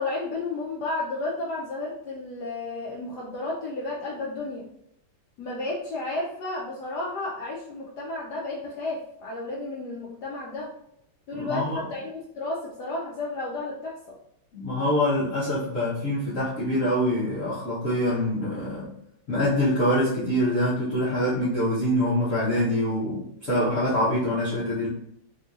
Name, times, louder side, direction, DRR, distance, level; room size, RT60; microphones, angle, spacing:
voice 1, 0.0-4.7 5.4-10.7 11.3-14.2, left 2 dB, 80° left, -3 dB, 0.9 m, -32 dB
voice 2, 11.3-11.8 14.5-18.9 19.3-24.9, left 1 dB, 50° left, -10 dB, 0.9 m, -25 dB
3.6 x 2.7 x 2.4 m, 0.77 s
omnidirectional pair, 2.4 m